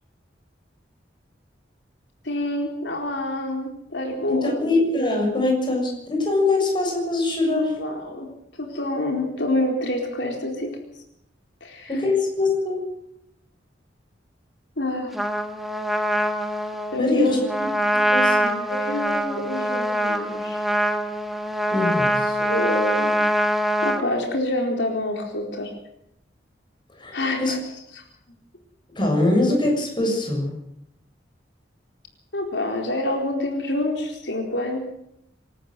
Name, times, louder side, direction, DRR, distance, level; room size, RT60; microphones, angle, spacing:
voice 1, 2.2-4.6 7.5-8.3 8.6-10.8 11.6-12.0 14.8-15.1 16.9-17.4 18.7-20.6 22.4-23.2 23.8-25.7 27.1-27.6 27.9-28.0 32.3-34.8, left 1 dB, 70° left, 2 dB, 4.2 m, -27 dB
voice 2, 4.3-7.7 11.9-12.9 17.0-17.7 18.1-18.5 21.7-22.4 26.9-27.1 27.4-27.6 29.0-30.6, left 2 dB, 25° left, 1 dB, 7.0 m, -23 dB
Trumpet, 15.1-24.0, equal, ahead, 1.5 m, -24 dB
26.0 x 13.5 x 7.9 m, 0.77 s
head